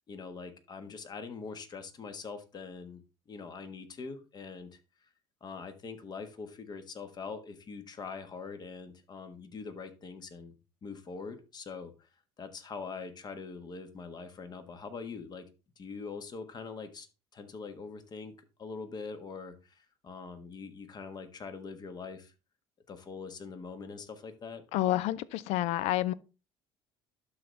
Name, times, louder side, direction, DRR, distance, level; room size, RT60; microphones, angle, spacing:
voice 1, 0.1-3.0 3.3-5.1 5.4-10.5 10.8-12.1 12.4-15.4 15.8-17.1 17.3-18.3 18.6-22.3 22.9-24.6, left 5 dB, 35° left, 1.4 m, -43 dB
voice 2, 24.7-26.1, left 14 dB, 70° left, 0.5 m, -29 dB
12.0 x 4.1 x 3.3 m
supercardioid pair, 95°, 12 cm